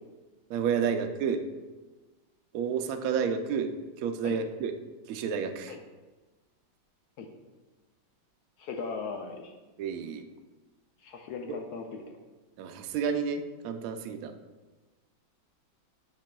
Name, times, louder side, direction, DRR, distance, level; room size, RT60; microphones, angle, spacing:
voice 1, 0.5-1.4 2.5-3.7 4.0-4.7 5.1-5.7 9.8-10.2 12.6-14.3, right 6 dB, 90° right, 7 dB, 0.7 m, -30 dB
voice 2, 8.6-9.5 11.0-12.0, left 5 dB, 70° left, 3 dB, 1.0 m, -38 dB
10.5 x 4.8 x 2.2 m, 1.2 s
omnidirectional pair, 2.1 m